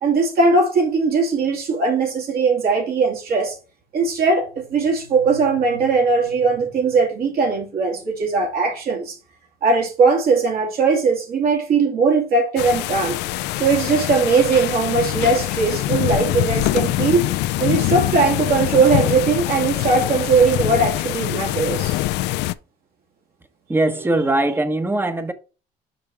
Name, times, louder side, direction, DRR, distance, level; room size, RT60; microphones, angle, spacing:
voice 1, 0.0-3.5 3.9-9.2 9.6-13.2 13.6-17.3 17.6-22.0, right 4 dB, 60° right, 2.4 m, -19 dB
sound 1, 12.6-22.5, left 16 dB, 85° left, 0.4 m, -24 dB
voice 2, 23.7-25.3, right 2 dB, 15° right, 0.9 m, -20 dB
5.3 x 5.2 x 4.5 m
cardioid pair, 110°, 17 cm